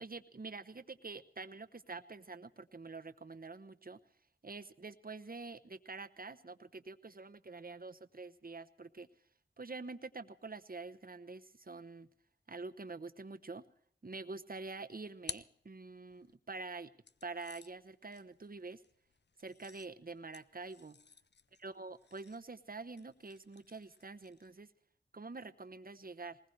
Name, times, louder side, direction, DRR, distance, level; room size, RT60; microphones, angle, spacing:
voice 1, 0.0-4.0 4.4-9.1 9.6-12.1 12.5-13.6 14.0-16.9 17.2-18.8 19.4-21.0 21.6-24.7 25.1-26.4, right 3 dB, 45° right, 9 dB, 0.9 m, -46 dB
sound 1, 14.6-16.4 17.0-24.6, left 5 dB, 60° left, 0.6 m, -54 dB
20.0 x 20.0 x 3.3 m, 0.66 s
wide cardioid pair, 55°, 21 cm